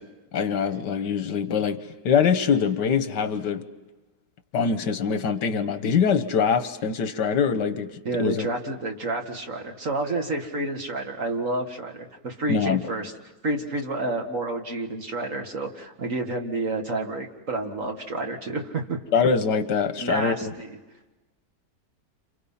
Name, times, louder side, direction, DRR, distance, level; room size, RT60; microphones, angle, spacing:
voice 1, 0.3-3.7 4.5-7.9 8.2-8.5 12.5-12.8 19.1-20.5, left 6 dB, 80° left, 10 dB, 1.8 m, -23 dB
voice 2, 8.0-13.1 13.4-19.0 20.0-20.8, right 2 dB, 50° right, 3 dB, 2.3 m, -29 dB
29.5 x 28.0 x 5.7 m, 1.2 s
omnidirectional pair, 1.8 m